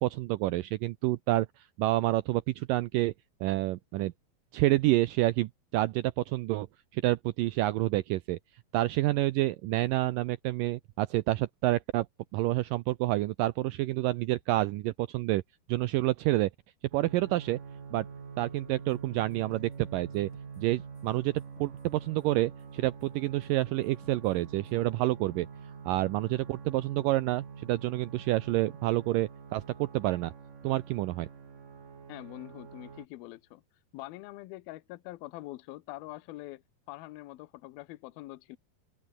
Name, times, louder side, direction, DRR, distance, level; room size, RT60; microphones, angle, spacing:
voice 1, 0.0-3.1 3.4-4.1 4.5-6.7 6.9-8.4 8.7-12.1 12.3-15.4 15.7-16.5 16.9-17.6 17.9-18.1 18.4-20.3 20.6-21.3 21.6-25.5 25.9-30.3 30.6-31.3, right 17 dB, 75° right, 2.1 m, -28 dB
sound 1, 16.9-33.1, right 6 dB, 60° right, 5.8 m, -46 dB
sound 2, 18.9-24.7, left 2 dB, 30° left, 8.3 m, -63 dB
voice 2, 32.1-33.6 33.9-36.6 36.9-38.6, left 18 dB, 80° left, 2.7 m, -44 dB
omnidirectional pair, 4.4 m